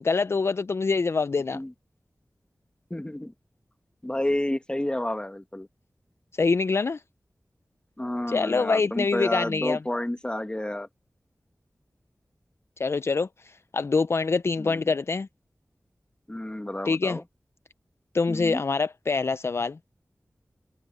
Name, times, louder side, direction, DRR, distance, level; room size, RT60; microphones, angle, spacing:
voice 1, 0.0-1.6 6.4-7.0 8.3-9.8 12.8-15.3 16.9-17.2 18.1-19.8, left 4 dB, 50° left, 0.3 m, -25 dB
voice 2, 2.9-3.3 4.0-5.7 8.0-10.9 14.6-14.9 16.3-17.2 18.3-18.6, left 1 dB, 15° left, 1.5 m, -30 dB
open air
wide cardioid pair, 55°, 5 cm